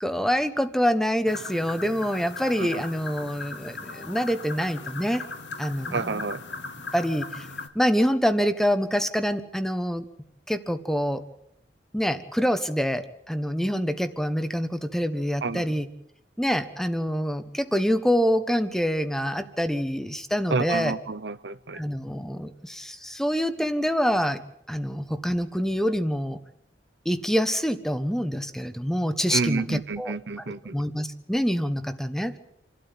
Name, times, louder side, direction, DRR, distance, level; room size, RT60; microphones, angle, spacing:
voice 1, 0.0-5.2 5.6-6.3 6.9-7.5 7.7-10.1 10.5-11.2 11.9-15.9 16.4-21.0 21.7-24.4 24.7-26.4 27.0-30.5 30.7-32.4, equal, ahead, 10 dB, 1.2 m, -26 dB
sound 1, 1.3-7.7, left 4 dB, 80° left, 2.3 m, -38 dB
voice 2, 5.9-6.4 15.4-15.6 20.5-21.8 29.3-30.8, right 4 dB, 70° right, 15 dB, 0.8 m, -29 dB
28.0 x 13.0 x 9.6 m, 0.74 s
head